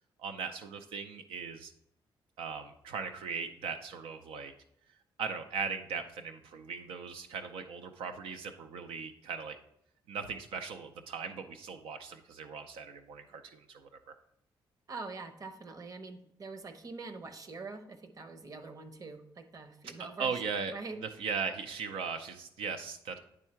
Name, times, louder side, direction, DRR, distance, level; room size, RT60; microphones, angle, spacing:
voice 1, 0.2-1.7 2.4-4.5 5.2-9.6 10.1-14.2 19.8-20.7 21.2-23.2, right 5 dB, 90° right, 6 dB, 0.5 m, -38 dB
voice 2, 14.9-20.4 20.7-21.0, right 3 dB, 40° right, 8 dB, 0.9 m, -44 dB
9.9 x 3.6 x 4.4 m, 0.76 s
cardioid pair, 85°, 9 cm